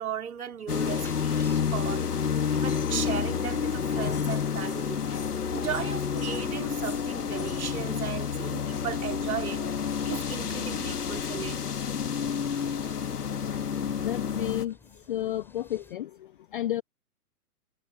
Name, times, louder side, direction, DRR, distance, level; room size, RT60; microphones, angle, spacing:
voice 1, 0.0-2.1 2.5-5.0 5.5-9.7 10.0-11.7, right 9 dB, 70° right, 3.3 m, -36 dB
sound 1, 0.7-14.7, left 7 dB, 80° left, 1.8 m, -29 dB
sound 2, 0.9-16.0, left 2 dB, 5° left, 4.9 m, -56 dB
voice 2, 14.0-14.8 15.1-16.1 16.5-16.8, left 12 dB, 40° left, 0.4 m, -31 dB
figure-of-eight pair, 120°, 46 cm